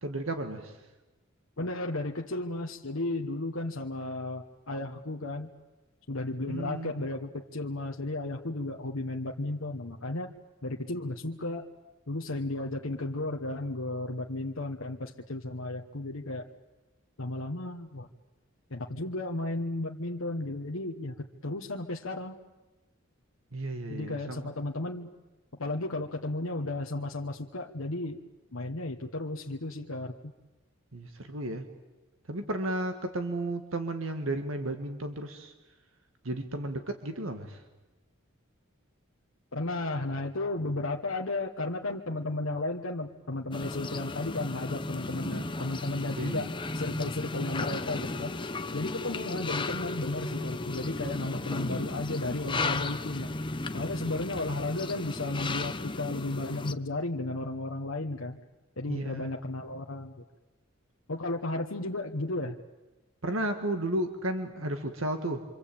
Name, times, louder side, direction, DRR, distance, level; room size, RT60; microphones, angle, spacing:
voice 1, 0.0-0.9 6.5-7.0 23.5-24.5 30.9-31.7 32.3-35.5 36.2-37.6 46.2-46.5 58.9-59.3 63.2-65.4, right 1 dB, 80° right, 6 dB, 1.9 m, -33 dB
voice 2, 1.6-5.5 6.1-10.3 10.6-11.6 12.1-16.4 17.2-18.1 18.7-21.1 21.4-22.3 23.9-25.1 25.6-28.2 28.5-30.1 39.5-48.3 48.7-53.3 53.7-58.4 58.8-60.1 61.1-62.5, left 2 dB, 85° left, 1 dB, 1.4 m, -34 dB
sound 1, 43.5-56.7, left 2 dB, 25° left, 0.9 m, -35 dB
27.0 x 25.5 x 8.7 m, 1.1 s
head